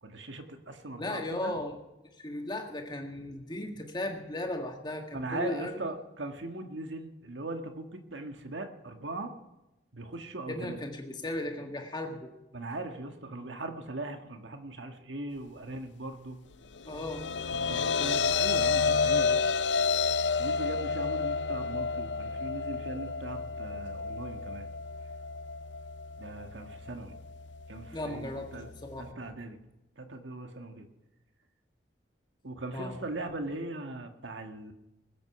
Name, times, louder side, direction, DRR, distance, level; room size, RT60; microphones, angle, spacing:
voice 1, 0.0-1.5 5.1-9.3 9.9-10.8 12.5-16.4 17.5-19.4 20.4-24.7 26.2-27.1 27.7-28.7 29.0-29.6 30.0-30.9 32.4-34.7, right 2 dB, 85° right, 6 dB, 1.6 m, -39 dB
voice 2, 1.0-1.8 2.2-5.8 10.5-12.3 16.8-17.2 27.9-29.2 32.7-33.0, left 1 dB, 25° left, 3 dB, 1.8 m, -36 dB
sound 1, 16.8-29.1, left 5 dB, 75° left, 0.5 m, -31 dB
20.5 x 8.2 x 5.9 m, 0.95 s
head